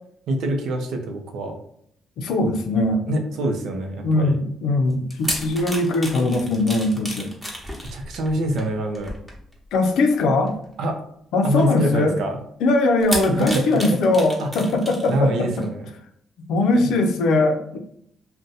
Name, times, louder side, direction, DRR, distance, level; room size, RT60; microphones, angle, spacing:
voice 1, 0.3-1.6 3.1-4.4 7.9-9.1 10.8-11.0 11.4-12.4 13.3-13.8 14.4-14.5 15.1-15.9, right 1 dB, 80° right, 3 dB, 0.5 m, -25 dB
voice 2, 2.2-3.0 4.0-7.3 9.7-10.6 11.3-12.2 12.6-15.5 16.5-17.8, left 2 dB, 80° left, 5 dB, 0.4 m, -20 dB
sound 1, 4.9-9.7 10.5-10.7 11.6-11.7 13.0-15.2 15.5-15.7, equal, 5° right, 0.9 m, -32 dB
2.6 x 2.2 x 3.9 m, 0.68 s
cardioid pair, 90°, 0 cm